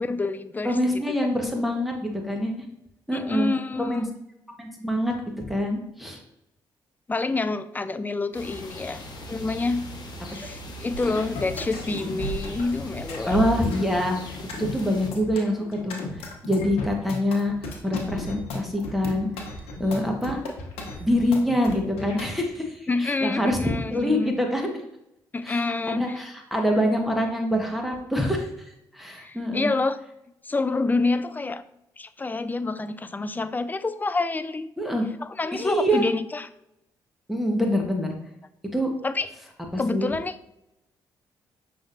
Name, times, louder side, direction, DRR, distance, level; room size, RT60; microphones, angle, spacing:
voice 1, 0.0-0.8 3.1-4.1 7.1-9.0 9.3-9.9 10.3-13.4 22.9-24.4 25.3-26.2 29.2-30.0 30.4-31.6 32.0-34.7 35.2-36.5 39.0-39.3 39.8-40.3, left 3 dB, 20° left, 12 dB, 0.3 m, -27 dB
voice 2, 0.6-2.5 3.1-3.5 3.8-4.0 4.6-6.2 10.4-10.5 13.3-16.0 16.4-17.5 17.8-19.3 19.8-20.4 21.0-24.8 25.4-25.6 25.9-28.5 28.9-29.7 34.8-35.1 35.5-36.0 37.3-38.1 38.7-38.9 39.7-40.1, equal, ahead, 1 dB, 1.2 m, -25 dB
sound 1, 8.3-15.1, equal, 45° left, 1.1 m, -40 dB
sound 2, 10.9-22.3, left 1 dB, 75° left, 0.8 m, -35 dB
5.9 x 3.3 x 2.6 m, 0.83 s
hypercardioid pair, 50°, 10 cm